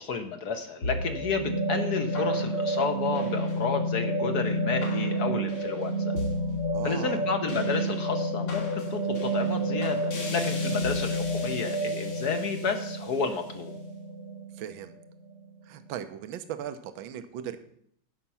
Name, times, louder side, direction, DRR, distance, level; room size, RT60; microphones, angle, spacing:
voice 1, 0.0-6.1 6.8-13.7, left 5 dB, 60° left, 7 dB, 1.2 m, -31 dB
sound 1, 0.8-15.3, right 1 dB, 80° left, 3.2 m, -30 dB
voice 2, 6.7-7.2 14.6-14.9 15.7-17.6, right 10 dB, 70° right, 10 dB, 1.5 m, -37 dB
15.0 x 5.8 x 5.6 m, 0.67 s
omnidirectional pair, 2.4 m